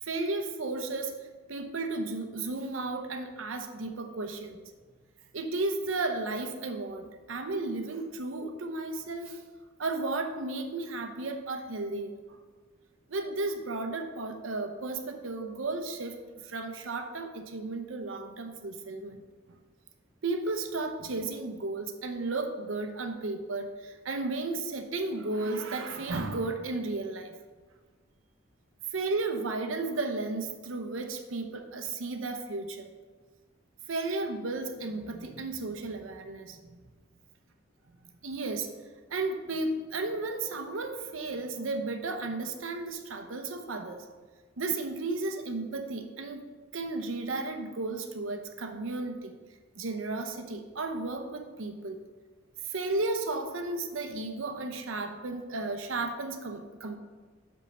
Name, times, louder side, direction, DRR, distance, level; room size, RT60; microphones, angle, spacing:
voice 1, 0.0-4.7 5.3-9.4 9.8-12.4 13.1-16.2 16.4-19.2 20.2-27.3 28.9-32.9 33.9-36.9 38.0-38.7 39.1-44.0 44.6-46.4 46.7-49.3 49.8-52.0 52.6-57.0, right 3 dB, 80° right, 6 dB, 0.8 m, -34 dB
5.5 x 5.3 x 6.6 m, 1.4 s
head